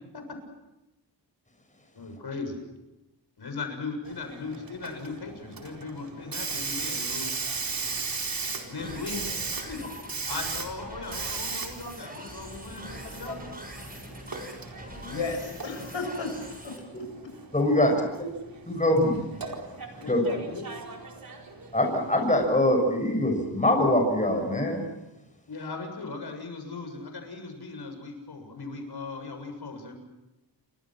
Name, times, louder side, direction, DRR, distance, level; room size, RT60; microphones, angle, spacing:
voice 1, 1.9-2.6 3.4-7.3 8.6-9.2 9.5-9.9 10.3-13.5 17.8-18.1 20.0-20.6 25.5-29.9, left 4 dB, 60° left, 5 dB, 7.3 m, -38 dB
Hiss, 4.1-22.5, right 4 dB, 50° right, 4.4 m, -37 dB
sound 1, 8.8-16.8, right 1 dB, 20° right, 7.6 m, -43 dB
voice 2, 14.9-16.4 16.6-17.3, left 3 dB, 90° left, 4 dB, 6.8 m, -34 dB
voice 3, 17.5-17.9 18.7-19.2 20.1-20.2 21.7-24.8, left 1 dB, 15° left, 3 dB, 6.5 m, -23 dB
29.0 x 25.0 x 6.2 m, 0.98 s
wide cardioid pair, 115°, 45 cm